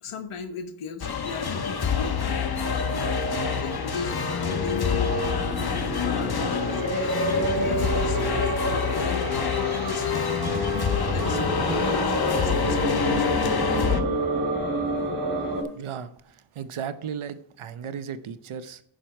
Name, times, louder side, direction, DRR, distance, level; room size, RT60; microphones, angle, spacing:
voice 1, 0.0-3.3 3.5-5.2 5.9-10.5 10.9-13.5, left 5 dB, 85° left, 9 dB, 1.1 m, -37 dB
sound 1, 1.0-14.0, left 6 dB, 50° left, 1.1 m, -27 dB
sound 2, 2.6-15.6, equal, 40° right, 2.8 m, -28 dB
voice 2, 15.7-18.8, right 7 dB, 80° right, 12 dB, 0.9 m, -35 dB
10.0 x 6.3 x 4.4 m, 0.70 s
cardioid pair, 50°, 49 cm